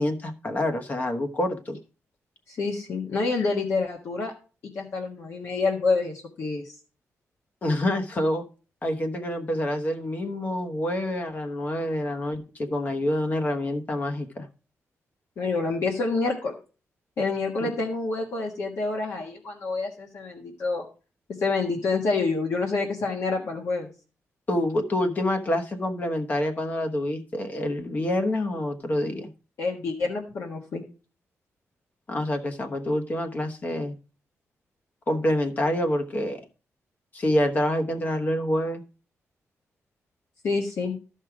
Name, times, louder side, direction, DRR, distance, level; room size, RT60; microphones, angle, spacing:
voice 1, 0.0-1.8 7.6-8.4 8.8-14.5 17.6-17.7 24.5-29.3 32.1-34.0 35.1-36.4 37.1-38.8, left 1 dB, 35° left, 5 dB, 1.1 m, -27 dB
voice 2, 2.5-4.3 4.7-6.7 15.4-16.5 17.2-20.9 21.4-23.9 29.6-30.8 40.4-40.9, left 3 dB, 60° left, 0 dB, 1.5 m, -27 dB
12.5 x 5.5 x 4.8 m, 0.35 s
wide cardioid pair, 155°, 5 cm